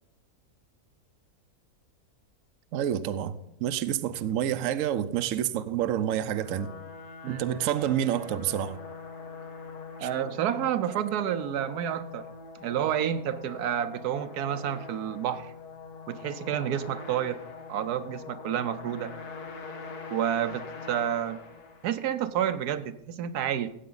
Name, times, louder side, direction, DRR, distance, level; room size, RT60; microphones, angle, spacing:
voice 1, 2.7-6.7 7.3-8.8 10.0-10.1, right 10 dB, 65° right, 0.9 m, -28 dB
sound 1, 6.0-22.3, left 4 dB, 80° left, 1.8 m, -43 dB
voice 2, 10.0-12.3 12.6-15.5 16.1-17.4 17.7-19.1 20.1-21.4 21.8-23.7, right 10 dB, 85° right, 1.2 m, -29 dB
15.0 x 8.4 x 3.9 m
omnidirectional pair, 1.6 m